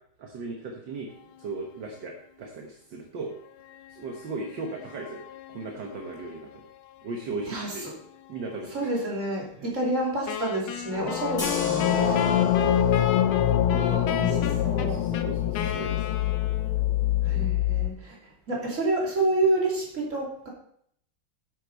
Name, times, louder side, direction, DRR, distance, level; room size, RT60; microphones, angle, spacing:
voice 1, 0.2-3.3 3.9-6.7 7.0-7.9 8.3-8.9 9.6-9.7 11.2-11.5 12.0-12.5 13.5-16.3 17.3-17.6, right 3 dB, 65° right, 1 dB, 1.8 m, -37 dB
sound 1, 4.5-5.8 10.9-17.9, left 12 dB, 90° left, 1.5 m, -25 dB
voice 2, 7.5-7.9 8.7-12.2 13.8-15.0 17.2-20.5, right 2 dB, 35° right, -3 dB, 3.1 m, -29 dB
Wind instrument woodwind instrument, 10.3-16.8, left 7 dB, 70° left, 1.4 m, -32 dB
sound 2, 11.4-17.4, left 2 dB, 30° left, 3.5 m, -42 dB
9.9 x 8.6 x 4.0 m, 0.68 s
omnidirectional pair, 2.3 m